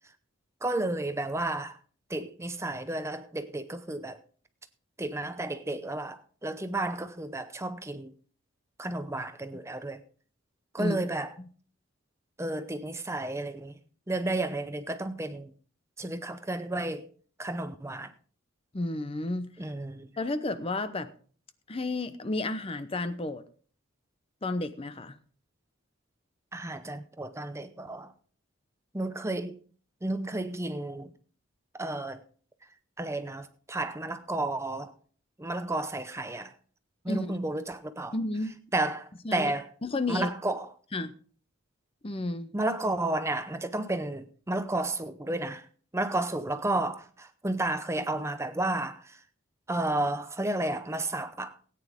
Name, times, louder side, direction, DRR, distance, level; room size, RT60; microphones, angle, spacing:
voice 1, 0.6-1.8 2.1-4.2 5.0-8.1 8.8-10.0 10.7-11.3 12.4-13.7 14.1-15.5 16.0-17.1 17.4-18.1 19.6-20.1 26.5-28.1 28.9-29.6 30.0-31.1 31.8-32.2 33.0-34.9 35.4-36.5 37.0-38.2 38.7-39.7 40.1-40.7 42.5-45.7 45.9-49.2 49.7-51.6, right 2 dB, 15° right, 0.7 m, -32 dB
voice 2, 18.7-19.5 20.2-21.1 21.7-23.4 24.4-25.2 37.1-37.3 38.1-38.6 39.2-39.5 39.8-40.3 40.9-41.1 42.0-42.5, left 2 dB, 25° left, 0.7 m, -31 dB
17.5 x 9.3 x 3.6 m
head